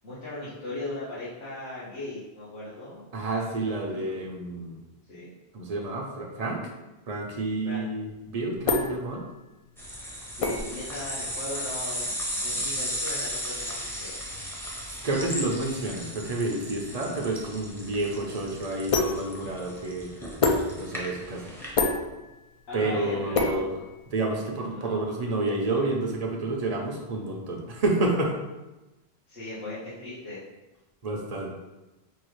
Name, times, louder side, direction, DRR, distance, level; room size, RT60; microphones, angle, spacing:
voice 1, 0.0-3.1 3.4-4.2 5.1-5.3 7.6-7.9 10.3-14.2 22.7-23.7 24.7-25.0 29.3-30.4, left 2 dB, 85° left, -11 dB, 1.4 m, -38 dB
voice 2, 3.1-4.8 5.5-6.6 7.1-9.2 14.9-20.1 20.8-21.5 22.7-23.7 24.1-28.3 31.0-31.5, right 2 dB, 45° right, 1 dB, 0.6 m, -29 dB
sound 1, 8.0-24.4, left 3 dB, 55° left, 0.4 m, -32 dB
sound 2, 9.8-21.7, equal, 5° left, 0.6 m, -35 dB
5.5 x 2.4 x 3.1 m, 1.1 s
omnidirectional pair, 1.1 m